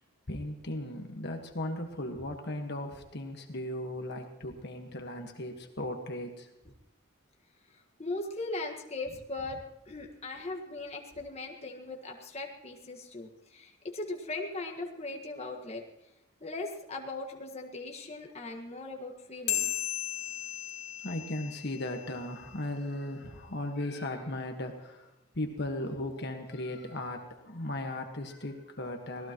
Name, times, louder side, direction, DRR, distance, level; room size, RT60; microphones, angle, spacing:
voice 1, 0.3-6.5 21.0-29.3, left 1 dB, 50° left, 3 dB, 1.5 m, -37 dB
voice 2, 7.7-9.6 9.8-15.8 16.4-19.8, left 2 dB, 30° left, 1 dB, 1.6 m, -39 dB
sound 1, 19.5-22.3, left 12 dB, 80° left, 2.0 m, -35 dB
25.5 x 18.0 x 3.0 m, 0.92 s
head